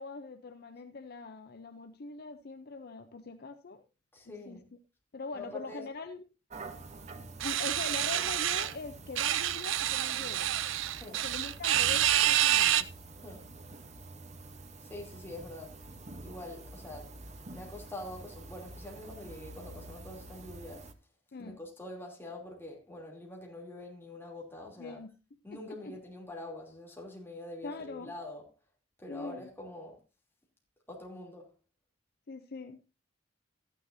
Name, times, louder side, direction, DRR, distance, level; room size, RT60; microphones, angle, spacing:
voice 1, 0.0-3.8 4.5-4.6 5.1-6.2 7.4-10.6 11.2-12.9 21.3-21.6 24.8-25.1 25.7-26.0 27.6-28.1 29.1-29.5 32.3-32.8, left 4 dB, 55° left, 0.6 m, -42 dB
voice 2, 4.1-4.7 5.3-5.8 10.9-11.2 13.2-13.5 14.8-15.8 16.2-17.1 17.5-20.9 21.4-25.0 25.4-28.5 29.0-30.0 30.9-31.5, left 1 dB, 10° left, 3.0 m, -45 dB
sound 1, 6.5-20.9, right 2 dB, 35° right, 0.9 m, -47 dB
sound 2, 7.4-8.7 9.2-12.8, right 12 dB, 90° right, 0.5 m, -28 dB
14.0 x 9.9 x 2.7 m
head